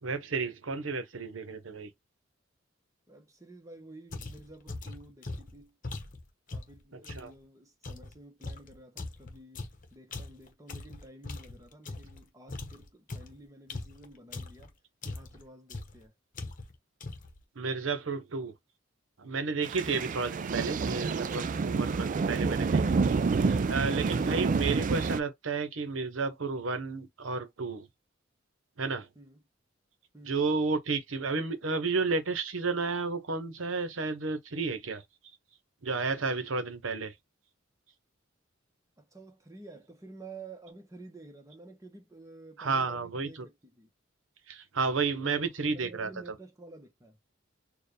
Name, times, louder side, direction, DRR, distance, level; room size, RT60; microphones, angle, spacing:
voice 1, 0.0-1.9 7.1-7.3 17.6-18.5 19.2-27.9 28.8-29.1 30.3-35.0 35.8-37.1 42.6-43.5 44.5-46.1, right 4 dB, 85° right, 0.9 m, -32 dB
voice 2, 3.1-5.8 6.5-9.6 9.9-14.7 15.0-16.1 20.0-20.1 29.1-29.4 30.1-30.6 39.0-43.9 45.2-47.2, right 2 dB, 15° right, 1.1 m, -51 dB
sound 1, 4.1-7.3 7.8-12.2 12.5-14.7 15.0-15.4 15.7-16.0 16.3-16.8 17.0-17.4, left 3 dB, 45° left, 1.0 m, -41 dB
sound 2, 19.6-25.2, right 4 dB, 40° right, 0.3 m, -28 dB
4.4 x 2.4 x 3.3 m
head